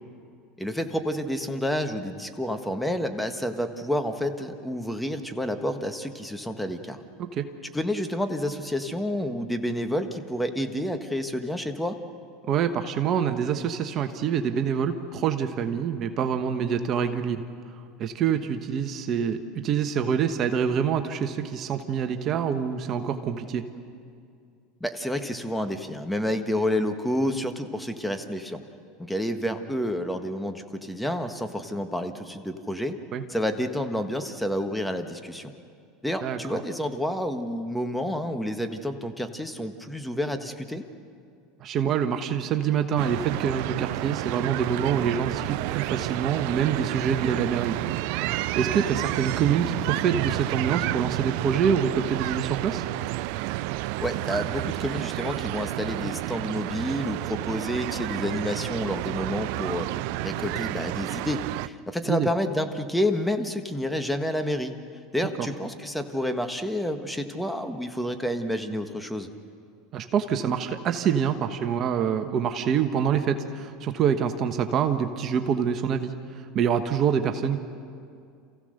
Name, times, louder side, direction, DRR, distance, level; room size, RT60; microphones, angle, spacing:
voice 1, 0.6-7.0 7.7-11.9 24.8-28.6 29.0-33.0 33.3-35.5 36.0-40.8 54.0-59.9 60.2-64.7 65.1-69.3, equal, 5° left, 6 dB, 1.6 m, -29 dB
voice 2, 12.4-17.4 18.0-23.7 33.1-33.2 36.2-36.6 41.6-48.1 48.5-52.8 62.1-62.3 65.4-65.5 69.9-77.6, right 7 dB, 45° right, 7 dB, 1.3 m, -26 dB
sound 1, 43.0-61.7, right 18 dB, 65° right, 0.5 m, -30 dB
28.0 x 15.5 x 6.6 m, 2.4 s
hypercardioid pair, 95°, 0 cm